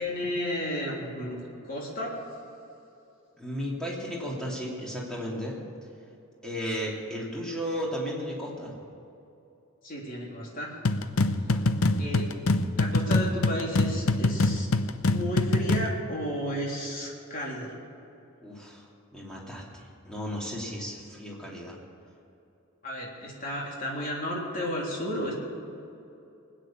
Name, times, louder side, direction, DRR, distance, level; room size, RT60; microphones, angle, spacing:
voice 1, 0.0-2.1 9.8-10.7 12.0-12.3 12.8-14.7 15.1-17.8 22.8-25.3, equal, 40° left, -3 dB, 3.5 m, -33 dB
voice 2, 3.4-5.6 6.4-8.7 11.4-11.8 18.4-18.9 19.1-21.8, equal, 5° left, -4 dB, 2.8 m, -34 dB
sound 1, 10.8-16.0, left 2 dB, 80° left, 0.7 m, -25 dB
20.5 x 9.2 x 7.4 m, 2.8 s
head